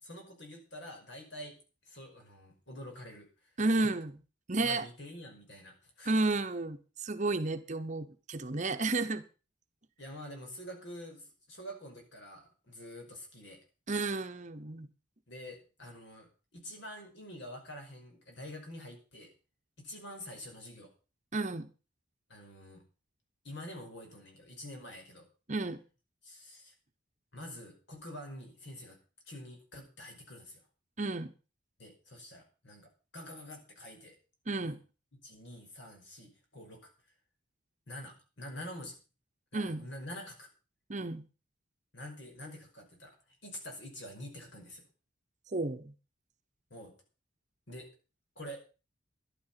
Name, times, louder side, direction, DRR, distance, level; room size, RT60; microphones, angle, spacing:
voice 1, 0.0-1.6 1.9-3.9 4.6-6.1 8.7-9.1 10.0-13.6 15.3-19.3 19.8-20.9 22.3-22.8 23.4-25.3 26.2-26.7 27.3-29.0 29.3-30.7 31.8-34.2 34.6-34.8 35.2-36.9 37.9-39.0 39.5-40.5 41.9-43.2 43.4-44.9 46.7-46.9 47.7-47.9 48.4-48.6, left 1 dB, 60° left, 3 dB, 5.4 m, -47 dB
voice 2, 3.6-4.1 4.5-4.8 6.0-9.2 13.9-14.9 21.3-21.7 25.5-25.8 31.0-31.3 34.5-34.8 39.5-39.9 40.9-41.2 45.5-45.9, right 2 dB, 35° right, 8 dB, 1.0 m, -32 dB
12.0 x 11.5 x 5.8 m, 0.34 s
head